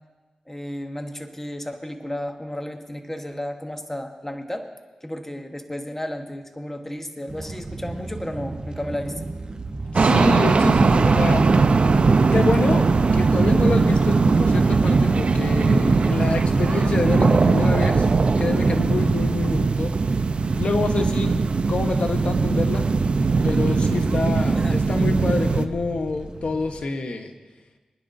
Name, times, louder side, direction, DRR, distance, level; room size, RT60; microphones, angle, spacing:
voice 1, 0.5-4.7 5.0-9.3 24.5-24.8, left 1 dB, 15° left, 5 dB, 1.3 m, -33 dB
sound 1, 7.3-26.9, right 3 dB, 40° right, 1.0 m, -36 dB
voice 2, 9.9-11.5 12.3-12.9 13.1-18.0 18.4-19.9 20.6-22.8 23.4-27.3, left 3 dB, 65° left, 5 dB, 1.1 m, -26 dB
sound 2, 9.9-25.6, right 4 dB, 60° right, 0.6 m, -19 dB
24.0 x 10.5 x 2.7 m, 1.2 s
cardioid pair, 45°, 2 cm